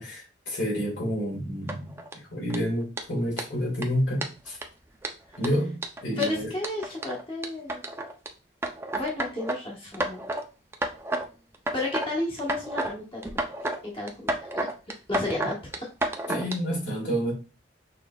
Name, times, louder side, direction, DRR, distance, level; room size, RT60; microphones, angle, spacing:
voice 1, 0.0-4.6 5.4-6.5 15.4-15.5 16.3-17.3, equal, 75° left, 2.2 m, -29 dB
sound 1, 1.7-2.1 2.5-2.6 3.0-3.1 3.4-3.5 3.8-3.9 4.2-4.6 5.0-8.3 8.6-9.6 9.9-10.4 10.7-11.3 11.5-12.1 12.4-12.9 13.2-13.8 14.1-16.5, right 1 dB, 15° right, 0.4 m, -30 dB
voice 2, 6.2-7.8 8.9-10.2 11.7-13.2 13.8-15.7 16.0-16.1, left 2 dB, 30° left, 1.2 m, -33 dB
6.3 x 3.3 x 2.3 m
head